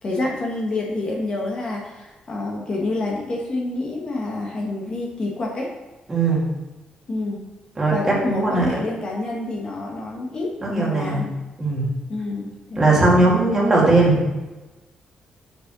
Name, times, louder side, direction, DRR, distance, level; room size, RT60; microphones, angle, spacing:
voice 1, 0.0-5.7 7.1-7.4 7.9-11.3 12.1-13.3, left 2 dB, 35° left, -2 dB, 1.5 m, -28 dB
voice 2, 6.1-6.4 7.8-8.7 10.6-11.2 11.6-11.9 12.8-14.2, right 2 dB, 20° right, -4 dB, 2.2 m, -18 dB
6.8 x 5.4 x 6.0 m, 1.1 s
cardioid pair, 145°, 3 cm